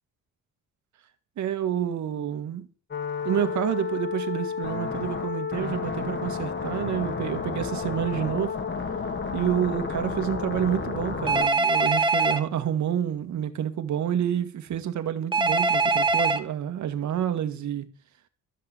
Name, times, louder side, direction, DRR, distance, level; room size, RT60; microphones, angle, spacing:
voice 1, 1.4-2.7 3.2-8.6 9.3-17.9, right 10 dB, 70° right, 1.8 m, -28 dB
sound 1, 2.9-11.5, left 5 dB, 40° left, 2.5 m, -31 dB
Telephone, 11.3-12.4 15.3-16.4, right 3 dB, 15° right, 1.5 m, -22 dB
13.0 x 5.8 x 8.1 m
cardioid pair, 90°, 30 cm